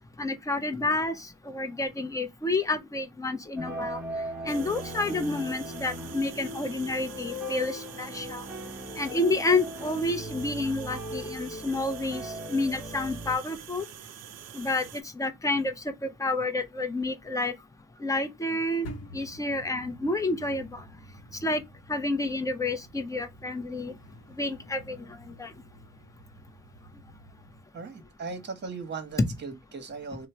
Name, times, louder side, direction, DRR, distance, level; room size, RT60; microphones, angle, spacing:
voice 1, 0.2-1.1 1.5-4.0 4.4-8.4 9.0-12.2 12.5-13.8 14.5-14.8 15.2-15.7 16.0-17.5 18.0-18.9 19.1-20.8 21.4-21.6 21.9-23.9 24.4-25.0 25.4-25.5 29.2-29.3, left 2 dB, 10° left, 0.6 m, -29 dB
sound 1, 3.6-13.4, equal, 5° right, 1.0 m, -38 dB
sound 2, 4.5-15.0, right 10 dB, 60° right, 0.5 m, -46 dB
sound 3, 18.8-27.6, equal, 55° left, 0.8 m, -49 dB
voice 2, 27.7-30.3, right 4 dB, 35° right, 1.0 m, -38 dB
3.0 x 2.1 x 4.2 m
cardioid pair, 90°, 30 cm